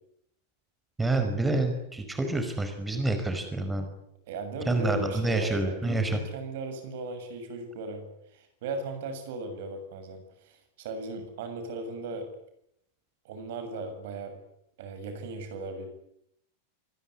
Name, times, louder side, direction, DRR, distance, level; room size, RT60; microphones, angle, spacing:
voice 1, 1.0-3.9 4.7-6.2, right 2 dB, 10° right, 6 dB, 5.2 m, -28 dB
voice 2, 4.3-8.1 8.3-12.3 13.2-14.3 14.8-15.9, right 3 dB, 55° right, 8 dB, 7.1 m, -37 dB
26.5 x 21.0 x 9.9 m, 0.76 s
figure-of-eight pair, 90°, 0 cm